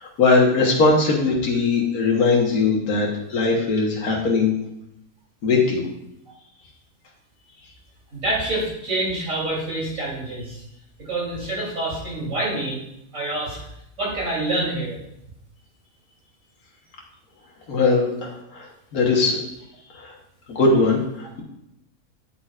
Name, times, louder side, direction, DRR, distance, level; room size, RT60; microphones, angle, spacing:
voice 1, 0.0-4.5 5.4-5.8 17.7-18.7 18.9-19.4 20.0-20.1 20.5-21.4, left 3 dB, 75° left, -1 dB, 1.8 m, -20 dB
voice 2, 8.1-10.6 11.0-12.8 13.1-13.6 14.0-15.0, right 2 dB, 60° right, -5 dB, 3.7 m, -26 dB
9.1 x 8.6 x 2.5 m, 0.80 s
omnidirectional pair, 1.6 m